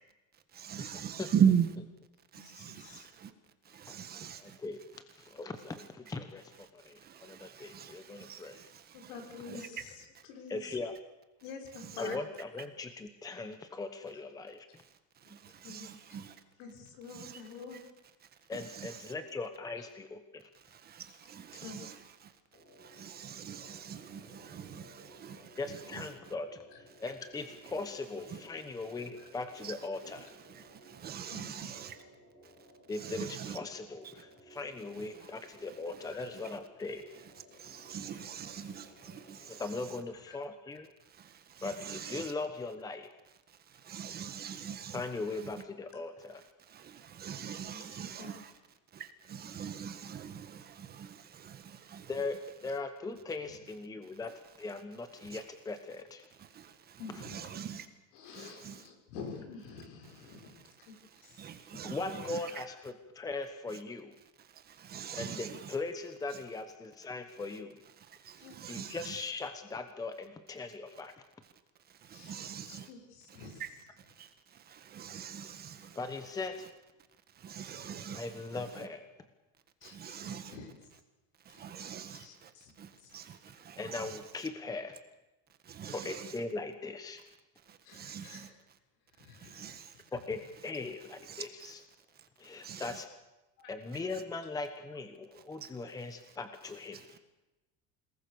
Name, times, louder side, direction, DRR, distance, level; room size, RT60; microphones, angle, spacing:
voice 1, 0.5-1.7 2.3-3.3 3.7-4.6 5.8-5.9 7.0-9.7 11.7-12.1 15.6-16.3 17.1-17.4 17.7-17.8 18.5-19.1 20.8-22.3 22.8-26.3 27.6-27.9 28.2-28.4 29.0-29.1 29.6-31.9 32.9-33.6 34.9-35.1 35.7-36.6 37.1-37.3 37.6-40.0 41.2-42.3 43.8-45.6 46.7-48.5 48.9-52.2 55.2-55.4 56.5-57.9 58.3-58.8 61.4-62.6 63.7-63.8 64.7-65.8 66.3-66.4 67.5-67.6 68.2-69.3 72.1-72.9 73.6-73.7 74.2-74.3 74.7-76.3 76.6-76.7 77.4-78.9 79.8-80.6 81.5-82.5 82.8-84.5 85.7-86.4 87.9-88.5 89.4-89.9 91.1-91.7 92.6-93.0 94.1-94.2 95.6-95.7 96.9-97.0, right 8 dB, 25° right, 9 dB, 1.7 m, -40 dB
voice 2, 2.3-3.1 8.9-10.7 11.4-12.2 12.6-12.7 15.2-15.4 15.6-16.2 16.6-17.8 19.1-19.2 21.5-21.9 26.7-26.8 28.5-28.6 29.2-29.3 31.3-31.7 36.1-36.3 39.3-39.4 40.3-40.4 47.7-47.8 48.2-48.3 57.0-57.4 58.1-60.9 61.2-61.5 62.7-62.8 65.0-65.4 68.4-68.6 72.1-73.6 79.8-80.7 81.5-82.7 83.0-83.1 85.9-86.0 87.8-88.5 89.2-89.7, left 4 dB, 70° left, 3 dB, 6.6 m, -48 dB
voice 3, 4.4-8.6 10.5-10.9 12.0-14.8 18.5-20.5 25.6-30.3 32.9-37.0 39.5-40.9 41.6-43.1 44.9-46.4 52.1-52.4 52.6-54.3 54.6-56.3 61.8-64.1 65.1-67.8 68.7-71.1 75.9-76.7 78.1-79.0 83.8-84.9 85.9-87.2 90.1-91.8 92.4-93.0 93.7-97.0, left 3 dB, 10° left, 9 dB, 1.1 m, -39 dB
sound 1, 22.5-39.9, equal, 30° left, 7.1 m, -58 dB
28.0 x 19.5 x 7.0 m, 1.0 s
cardioid pair, 175°, 34 cm